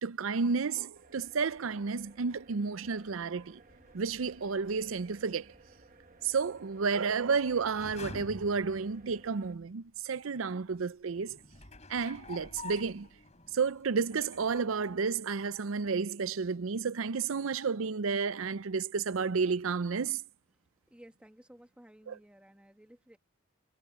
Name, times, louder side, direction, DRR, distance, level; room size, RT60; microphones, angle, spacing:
voice 1, 0.0-3.6 3.9-5.5 6.2-11.4 11.9-13.1 13.5-20.2 22.1-22.2, right 5 dB, 70° right, 0.6 m, -31 dB
sound 1, 0.9-9.5, right 3 dB, 40° right, 1.4 m, -59 dB
sound 2, 3.5-9.6 10.2-10.3 11.2-15.5 15.7-15.8, left 3 dB, 35° left, 4.4 m, -51 dB
voice 2, 20.5-23.2, equal, 5° right, 1.9 m, -56 dB
head